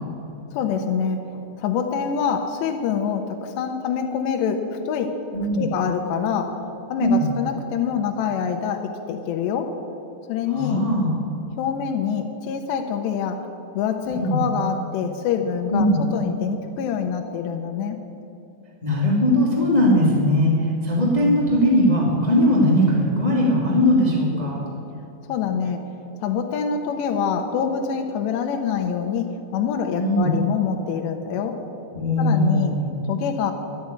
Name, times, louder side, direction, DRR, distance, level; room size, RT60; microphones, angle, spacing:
voice 1, 0.5-5.3 5.6-6.6 6.9-9.8 10.3-10.8 11.6-13.5 13.8-18.1 25.3-25.9 26.2-31.6 32.2-32.8 33.1-33.5, left 7 dB, 80° left, 4 dB, 2.7 m, -25 dB
voice 2, 7.0-7.3 10.5-11.1 14.2-14.4 15.7-16.0 18.8-24.6 30.0-30.3 31.9-32.9, left 1 dB, 45° left, -5 dB, 0.5 m, -19 dB
11.5 x 9.9 x 9.5 m, 3.0 s
omnidirectional pair, 5.5 m